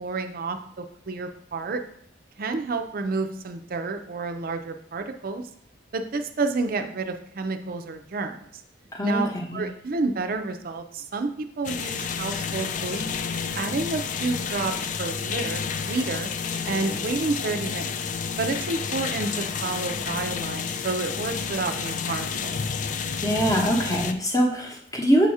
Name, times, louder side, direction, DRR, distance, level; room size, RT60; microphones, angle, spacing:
voice 1, 0.0-1.8 2.4-5.5 5.9-8.4 9.0-15.6 15.9-16.3 16.7-17.9 18.4-22.6, right 3 dB, 50° right, 7 dB, 0.5 m, -30 dB
voice 2, 8.9-9.7 23.2-25.3, equal, 20° left, 1 dB, 0.9 m, -23 dB
sound 1, 11.6-24.1, left 6 dB, 45° left, 0.3 m, -30 dB
7.1 x 2.8 x 4.7 m, 0.70 s
head